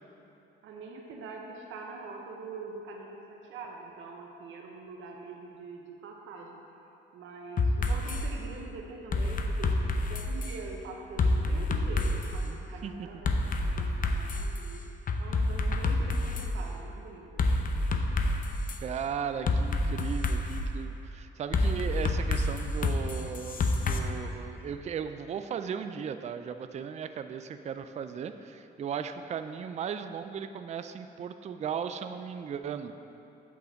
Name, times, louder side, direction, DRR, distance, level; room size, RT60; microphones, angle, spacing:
voice 1, 0.6-6.6 7.1-13.3 13.7-14.8 15.2-17.4, right 4 dB, 80° right, 1 dB, 0.8 m, -44 dB
sound 1, 7.6-8.2 9.1-10.6 11.2-12.4 13.2-14.6 15.1-16.5 17.4-18.8 19.5-20.6 21.5-24.0, left 2 dB, 45° left, 0.7 m, -28 dB
voice 2, 12.4-13.1 18.8-32.9, right 7 dB, 35° right, 9 dB, 0.4 m, -37 dB
8.5 x 3.9 x 7.0 m, 2.8 s
cardioid pair, 90°, 20 cm